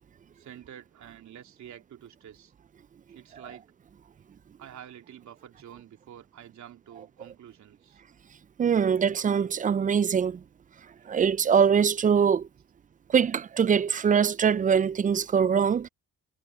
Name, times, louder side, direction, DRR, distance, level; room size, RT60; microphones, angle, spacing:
voice 1, 0.3-2.5 3.1-3.7 4.6-8.0, right 10 dB, 70° right, 3.4 m, -48 dB
voice 2, 8.6-10.4 11.1-12.5 13.1-15.9, right 7 dB, 25° right, 0.4 m, -23 dB
cardioid pair, 90°, 30 cm